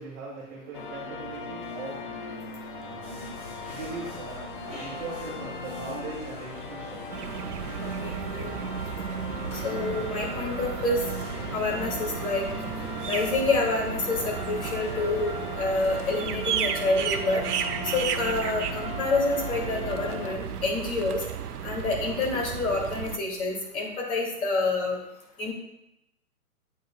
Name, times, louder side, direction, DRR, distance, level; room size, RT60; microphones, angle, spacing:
voice 1, 0.0-2.0 2.8-3.3 3.7-7.0, right 3 dB, 20° right, -5 dB, 1.7 m, -40 dB
sound 1, 0.7-20.3, left 4 dB, 35° left, 0.5 m, -39 dB
sound 2, 3.0-17.2, left 1 dB, 10° left, 2.2 m, -44 dB
sound 3, 7.1-23.2, right 8 dB, 85° right, 0.6 m, -34 dB
voice 2, 8.0-8.6 9.5-11.0 11.5-12.5 13.1-17.4 17.9-21.2 21.6-25.0 25.4-25.5, left 3 dB, 65° left, -1 dB, 2.5 m, -28 dB
8.7 x 5.2 x 2.3 m, 0.82 s
hypercardioid pair, 145°, 45 cm